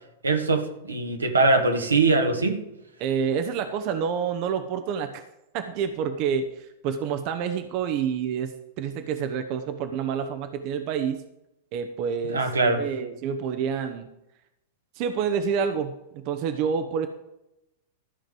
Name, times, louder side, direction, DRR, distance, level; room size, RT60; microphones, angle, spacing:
voice 1, 0.2-2.6 12.3-12.8, right 3 dB, 85° right, 4 dB, 1.8 m, -22 dB
voice 2, 3.0-5.2 5.5-11.2 11.7-14.1 14.9-17.1, right 7 dB, 45° right, 8 dB, 1.0 m, -28 dB
13.5 x 5.2 x 7.8 m, 0.86 s
figure-of-eight pair, 100°, 0 cm